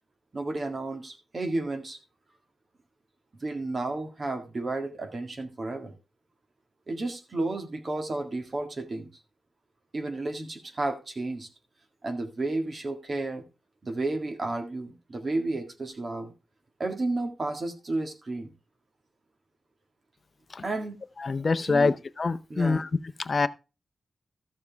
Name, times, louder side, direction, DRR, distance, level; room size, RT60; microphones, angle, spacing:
voice 1, 0.3-2.0 3.4-5.9 6.9-9.1 9.9-11.5 12.0-13.4 13.8-16.3 16.8-18.5 20.6-21.0 21.6-21.9 22.5-22.8, right 2 dB, 40° right, 1.9 m, -32 dB
voice 2, 21.2-22.9 23.3-23.5, left 4 dB, 45° left, 0.6 m, -25 dB
13.0 x 7.2 x 3.5 m
wide cardioid pair, 115°, 0 cm